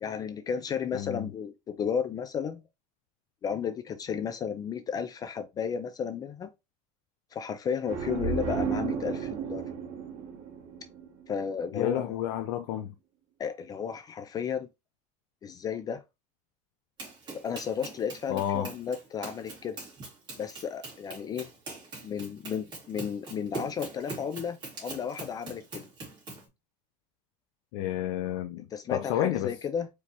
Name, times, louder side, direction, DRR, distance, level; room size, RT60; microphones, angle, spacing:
voice 1, 0.0-2.6 3.4-6.5 7.3-9.6 11.3-12.2 13.4-14.7 15.4-16.0 17.4-19.8 20.4-21.5 22.0-25.8 28.7-29.9, left 7 dB, 25° left, 0.3 m, -33 dB
voice 2, 0.9-1.3 11.7-12.9 18.3-18.7 27.7-28.7 28.9-29.5, left 11 dB, 75° left, 0.5 m, -30 dB
sound 1, 7.8-11.5, right 6 dB, 45° right, 2.1 m, -33 dB
Run, 17.0-26.5, right 3 dB, 25° right, 2.4 m, -43 dB
4.8 x 3.4 x 2.8 m
cardioid pair, 170°, 17 cm